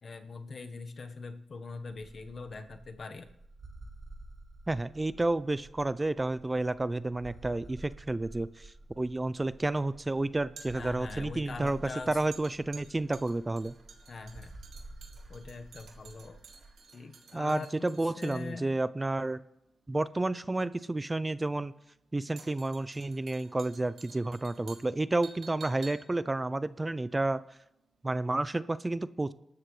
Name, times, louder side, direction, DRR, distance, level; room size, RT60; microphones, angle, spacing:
voice 1, 0.0-3.3 10.7-12.2 14.1-14.6 15.3-16.4 16.9-18.8, left 4 dB, 55° left, 6 dB, 1.3 m, -43 dB
sound 1, 1.9-16.7, right 2 dB, 40° right, 1.7 m, -51 dB
voice 2, 4.7-11.8 12.1-13.7 17.3-19.4 19.9-21.7 22.1-27.4 28.0-29.3, right 2 dB, 20° right, 15 dB, 0.5 m, -31 dB
sound 2, 8.4-27.7 27.9-28.1, right 5 dB, 90° right, 2.5 m, -54 dB
26.5 x 13.0 x 3.3 m, 0.85 s
wide cardioid pair, 105°, 0 cm